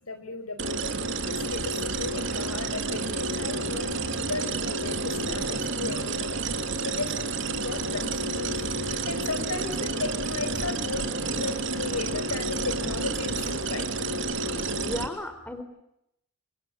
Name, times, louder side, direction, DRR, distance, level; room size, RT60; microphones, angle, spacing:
voice 1, 0.0-6.4 6.8-11.1 11.3-13.9, left 3 dB, 85° left, 11 dB, 5.1 m, -35 dB
sound 1, 0.6-15.0, right 3 dB, 60° right, 3.1 m, -30 dB
sound 2, 0.8-14.8, equal, 10° right, 4.2 m, -46 dB
voice 2, 14.4-15.6, left 1 dB, 5° left, 9 dB, 4.1 m, -35 dB
28.5 x 26.5 x 7.9 m, 0.79 s
head